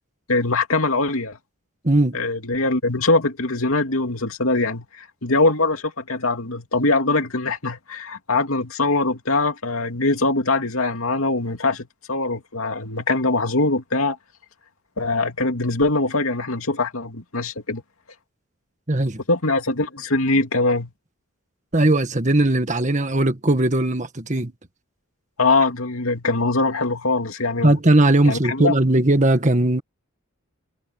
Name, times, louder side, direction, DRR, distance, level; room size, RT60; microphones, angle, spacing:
voice 1, 0.3-1.4 2.1-14.2 15.0-17.8 19.3-20.9 25.4-27.8 28.2-28.7, left 3 dB, 85° left, 2.7 m, -22 dB
voice 2, 1.8-2.2 18.9-19.2 21.7-24.5 27.6-29.8, right 1 dB, 35° right, 1.8 m, -18 dB
head